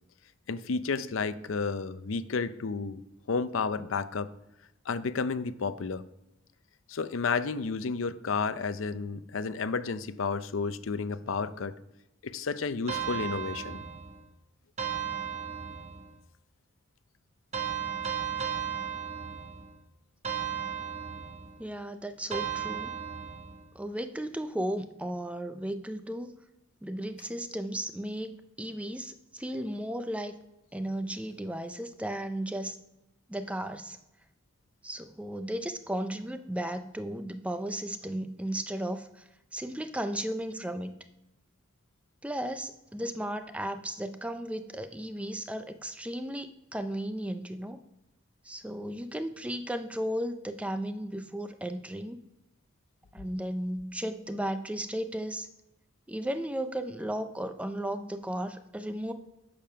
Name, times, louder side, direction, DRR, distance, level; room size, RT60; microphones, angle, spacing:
voice 1, 0.5-3.0 3.3-4.3 4.9-6.0 6.9-11.7 12.2-13.8, left 4 dB, 85° left, 13 dB, 0.6 m, -31 dB
sound 1, 12.9-14.2 14.8-16.1 17.5-19.7 20.2-21.5 22.3-23.6, right 8 dB, 35° right, 1.1 m, -35 dB
voice 2, 21.6-23.0 23.7-26.3 26.8-28.3 28.6-30.4 30.7-32.8 33.3-34.0 34.8-39.2 39.5-41.0 42.2-47.8 48.5-52.2 53.1-55.5 56.1-59.1, right 1 dB, 5° right, 9 dB, 0.5 m, -35 dB
8.8 x 6.8 x 5.7 m, 0.93 s
head